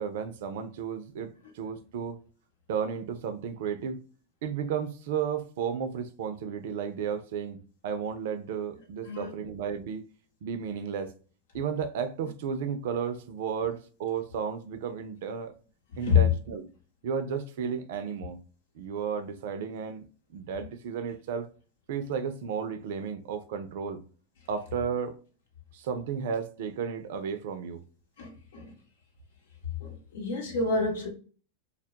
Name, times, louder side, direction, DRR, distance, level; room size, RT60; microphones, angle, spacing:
voice 1, 0.0-2.2 2.7-4.0 4.4-10.0 10.4-11.1 11.5-15.5 16.0-16.7 17.0-18.4 18.7-20.1 20.3-21.5 21.9-24.0 24.5-25.2 25.7-27.8, right 7 dB, 65° right, 0.4 m, -33 dB
voice 2, 28.2-28.7 29.8-31.1, left 6 dB, 70° left, 0.9 m, -27 dB
2.2 x 2.0 x 2.7 m
hypercardioid pair, 100°, 0 cm